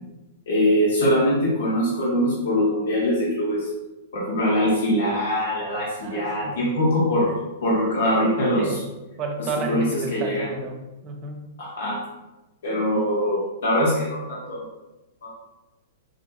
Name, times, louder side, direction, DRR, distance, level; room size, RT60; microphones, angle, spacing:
voice 1, 0.5-3.7 4.1-7.3 7.6-8.8 9.7-10.5 11.6-12.0 12.6-14.6 15.2-15.3, equal, 70° left, -5 dB, 0.9 m, -22 dB
voice 2, 6.0-6.7 8.5-8.8 9.2-11.6, right 3 dB, 35° right, 3 dB, 0.6 m, -32 dB
3.8 x 2.6 x 2.3 m, 1.0 s
hypercardioid pair, 115°, 0 cm